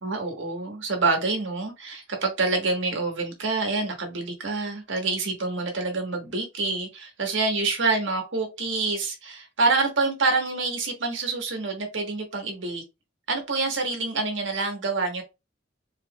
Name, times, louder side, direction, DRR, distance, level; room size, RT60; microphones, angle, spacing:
voice 1, 0.0-12.8 13.3-15.2, right 3 dB, 70° right, 1.5 m, -27 dB
4.2 x 3.6 x 2.4 m
head